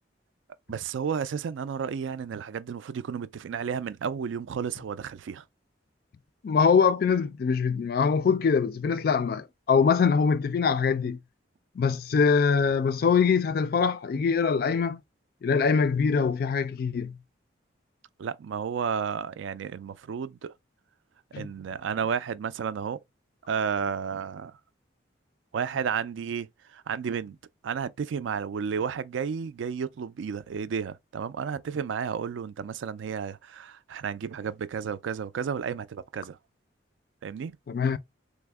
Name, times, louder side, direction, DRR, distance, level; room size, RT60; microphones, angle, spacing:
voice 1, 0.7-5.4 18.2-20.5 21.4-23.0 23.5-24.5 25.5-27.4 27.6-36.4 37.2-37.6, right 7 dB, 75° right, 0.3 m, -32 dB
voice 2, 6.4-11.2 11.8-15.0 15.4-17.2 21.3-21.5 37.7-38.0, left 5 dB, 50° left, 0.3 m, -23 dB
3.4 x 2.0 x 3.4 m
head